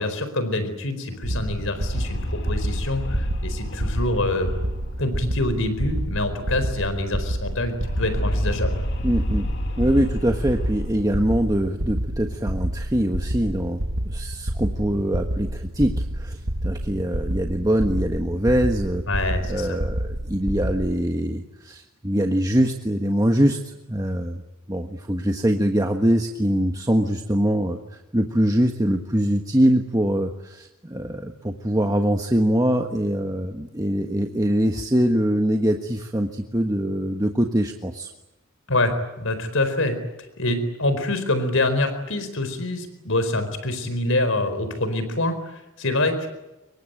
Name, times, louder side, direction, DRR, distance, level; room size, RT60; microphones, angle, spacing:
voice 1, 0.0-4.5 5.0-8.8 19.1-19.8 38.7-38.9 39.2-40.0 40.4-46.3, left 2 dB, 70° left, 10 dB, 4.4 m, -25 dB
sound 1, 1.1-6.5 6.7-6.8 7.1-11.4, equal, 55° left, 2.5 m, -31 dB
sound 2, 1.2-21.0, right 1 dB, 65° right, 1.7 m, -29 dB
voice 2, 9.0-19.0 19.5-24.4 24.7-38.1, equal, 15° right, 3 dB, 1.4 m, -23 dB
26.0 x 23.5 x 9.1 m, 0.99 s
head